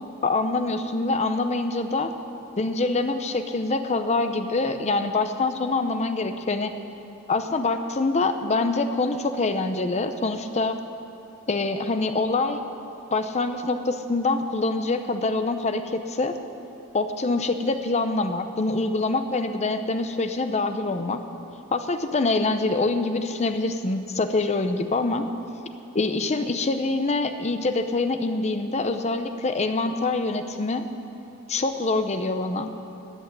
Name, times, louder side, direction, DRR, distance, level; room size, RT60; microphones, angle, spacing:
voice 1, 0.2-2.1 2.6-6.7 7.3-10.8 11.5-12.6 13.1-16.4 16.9-21.2 21.7-25.2 25.9-30.9 31.5-32.7, left 3 dB, 30° left, 8 dB, 0.7 m, -25 dB
14.0 x 6.3 x 9.7 m, 2.8 s
head